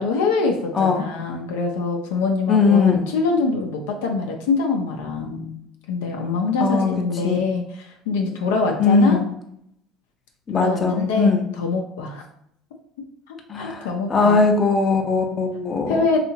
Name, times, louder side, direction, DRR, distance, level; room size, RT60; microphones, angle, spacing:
voice 1, 0.0-5.6 5.9-9.2 10.5-12.2 13.3-14.4 15.9-16.2, left 4 dB, 90° left, 1 dB, 0.4 m, -24 dB
voice 2, 0.7-1.1 2.5-3.1 6.6-6.9 7.2-7.4 8.8-9.2 10.5-11.5 13.5-16.1, left 4 dB, 35° left, 4 dB, 0.5 m, -19 dB
2.8 x 2.4 x 2.7 m, 0.72 s
supercardioid pair, 80°, 0 cm